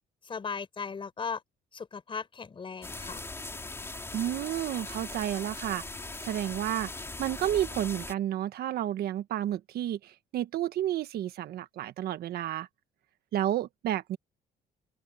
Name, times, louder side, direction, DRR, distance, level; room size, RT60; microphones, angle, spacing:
voice 1, 0.2-1.4 1.7-3.2, left 5 dB, 30° left, 4.5 m, -37 dB
sound 1, 2.8-8.1, left 2 dB, 15° left, 4.6 m, -40 dB
voice 2, 4.1-5.8 6.2-6.9 7.2-12.7 13.3-14.2, right 12 dB, 70° right, 1.5 m, -31 dB
open air
cardioid pair, 110°, 17 cm